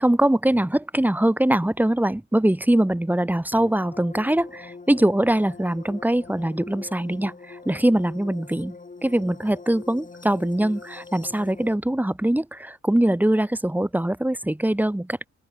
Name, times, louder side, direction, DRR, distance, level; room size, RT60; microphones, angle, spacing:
voice 1, 0.0-15.3, right 1 dB, 5° right, 2.1 m, -22 dB
sound 1, 3.5-11.8, left 4 dB, 25° left, 5.9 m, -43 dB
open air
cardioid pair, 90°, 30 cm